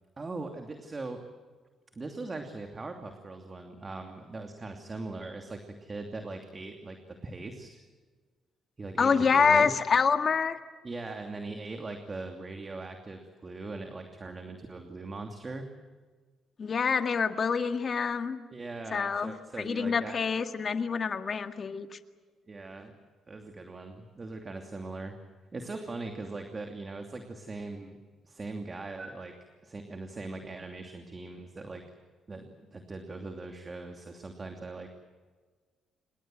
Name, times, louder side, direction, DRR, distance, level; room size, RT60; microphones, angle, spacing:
voice 1, 0.2-1.2 2.0-7.8 8.8-9.7 10.8-15.7 18.5-20.2 22.5-22.9 23.3-25.2 25.5-28.0 28.2-29.3 29.6-31.8 32.3-34.9, right 3 dB, 30° right, 4 dB, 2.7 m, -40 dB
voice 2, 9.0-10.6 16.6-18.4 18.9-19.3 19.6-21.9, left 5 dB, 45° left, 7 dB, 1.9 m, -26 dB
28.0 x 21.0 x 7.8 m, 1.4 s
cardioid pair, 90°, 0 cm